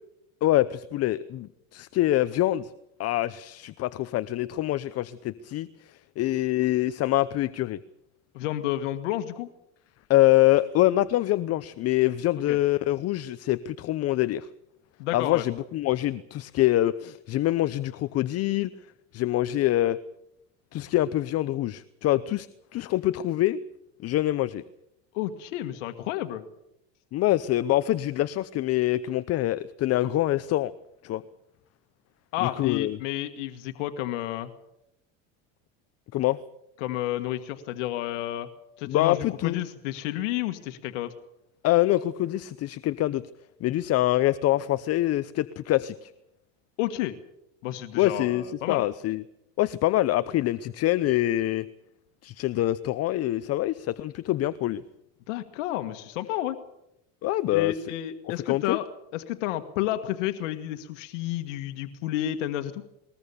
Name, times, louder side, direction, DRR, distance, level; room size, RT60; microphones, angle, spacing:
voice 1, 0.4-2.7 3.0-5.7 6.2-7.8 10.1-14.5 15.1-18.7 19.1-20.0 20.7-22.5 22.7-23.6 24.0-24.6 27.1-30.7 31.0-31.2 32.4-33.0 36.1-36.4 38.8-39.6 41.6-43.3 43.6-46.1 48.0-49.2 49.6-51.6 52.2-54.8 57.2-57.7 58.5-58.8, left 15 dB, 40° left, 14 dB, 0.8 m, -25 dB
voice 2, 8.3-9.5 12.5-12.6 15.0-15.4 25.1-26.4 32.3-34.5 36.8-38.5 38.8-41.1 46.8-47.2 47.6-48.8 55.3-56.6 57.5-58.8 59.1-62.8, left 13 dB, 85° left, 7 dB, 1.6 m, -31 dB
21.0 x 21.0 x 7.0 m, 0.82 s
supercardioid pair, 130°, 36 cm